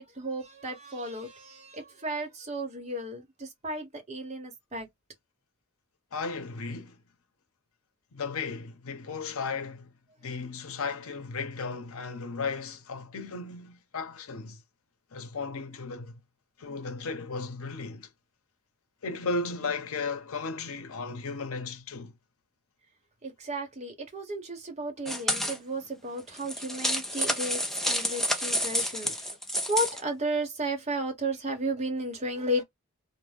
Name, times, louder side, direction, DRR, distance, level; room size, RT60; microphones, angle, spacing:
voice 1, 0.0-4.9 23.2-27.6 27.9-29.1 29.7-32.6, right 1 dB, 30° right, 1.0 m, -33 dB
voice 2, 6.1-7.0 8.1-9.9 10.2-14.6 15.1-16.2 16.6-18.1 19.0-22.1 29.0-29.2, left 4 dB, 80° left, 0.7 m, -35 dB
sound 1, 25.1-25.6 26.3-30.0, equal, ahead, 0.4 m, -29 dB
2.6 x 2.1 x 3.3 m
head